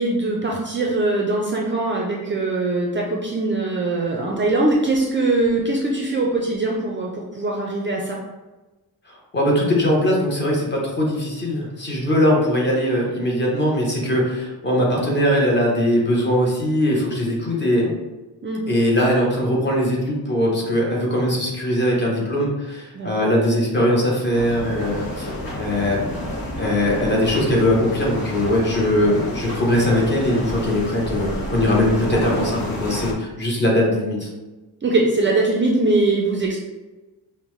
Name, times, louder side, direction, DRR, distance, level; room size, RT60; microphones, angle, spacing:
voice 1, 0.0-8.2 18.4-18.6 22.9-23.1 34.8-36.6, right 2 dB, 30° right, -2 dB, 0.4 m, -21 dB
voice 2, 9.1-17.9 18.7-26.1 26.6-34.3, left 1 dB, 30° left, -3 dB, 0.9 m, -20 dB
sound 1, 24.3-33.1, left 1 dB, 60° left, 1.1 m, -30 dB
5.2 x 2.1 x 3.1 m, 1.1 s
wide cardioid pair, 175°, 38 cm